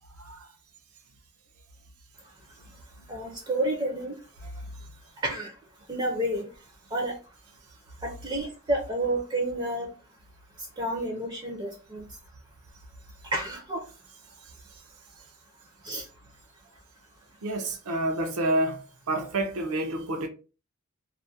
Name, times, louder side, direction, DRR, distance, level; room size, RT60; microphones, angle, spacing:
voice 1, 0.2-0.5 4.4-4.5 17.4-20.3, right 1 dB, 80° right, 0.5 m, -29 dB
voice 2, 3.1-4.1 5.2-5.5 5.9-6.5 6.9-7.1 8.0-9.9 10.8-12.0 13.3-13.8 15.8-16.0, right 1 dB, 20° right, 0.4 m, -30 dB
2.3 x 2.0 x 2.6 m
head